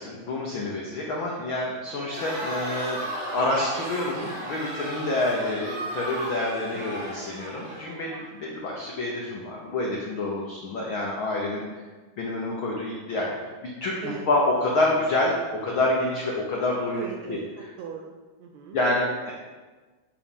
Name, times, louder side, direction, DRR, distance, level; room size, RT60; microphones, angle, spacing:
voice 1, 0.0-3.0 3.3-11.6 12.2-13.4 13.6-17.4 18.7-19.3, left 2 dB, 80° left, -2 dB, 1.1 m, -27 dB
Crowd, 2.0-8.2, right 1 dB, 60° right, 3.2 m, -35 dB
voice 2, 6.7-7.1 14.0-14.2 16.9-18.1 18.4-18.8, right 7 dB, 80° right, 2 dB, 1.6 m, -39 dB
8.4 x 5.1 x 5.4 m, 1.3 s
omnidirectional pair, 3.8 m